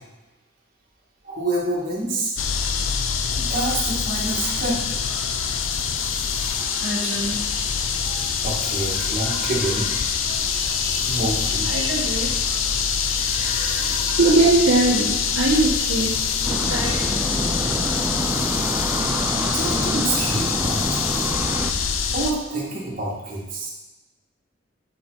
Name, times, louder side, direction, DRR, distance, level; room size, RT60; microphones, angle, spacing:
voice 1, 1.2-2.3 3.4-4.8 8.4-9.9 11.1-11.7 19.3-21.0 22.1-23.7, right 2 dB, 45° right, -5 dB, 2.1 m, -27 dB
sound 1, 2.4-22.3, left 6 dB, 85° left, 0.6 m, -24 dB
voice 2, 6.4-7.7 8.0-8.3 9.2-9.5 10.5-11.2 11.6-12.3 13.0-17.2, right 2 dB, 80° right, -5 dB, 1.7 m, -24 dB
sound 2, 16.4-21.7, right 1 dB, 10° right, 0.4 m, -27 dB
7.2 x 5.8 x 4.0 m, 1.1 s
head